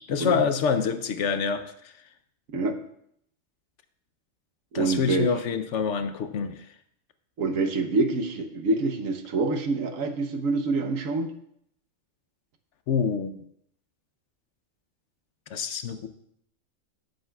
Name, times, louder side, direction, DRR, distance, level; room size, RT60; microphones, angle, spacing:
voice 1, 0.1-1.6 4.7-6.6 12.9-13.3 15.5-16.1, left 6 dB, 70° left, 9 dB, 0.9 m, -26 dB
voice 2, 4.7-5.3 7.4-11.3, right 3 dB, 85° right, 6 dB, 1.3 m, -26 dB
15.5 x 7.9 x 2.3 m, 0.71 s
omnidirectional pair, 1.4 m